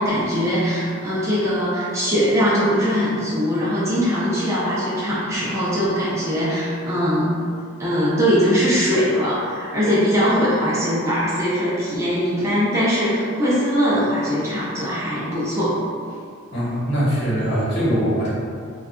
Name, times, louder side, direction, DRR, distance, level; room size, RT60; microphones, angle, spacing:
voice 1, 0.0-7.3 7.8-15.8, equal, 15° right, -10 dB, 0.6 m, -21 dB
voice 2, 16.5-18.3, equal, 55° left, -9 dB, 1.0 m, -21 dB
3.9 x 2.4 x 2.2 m, 2.3 s
head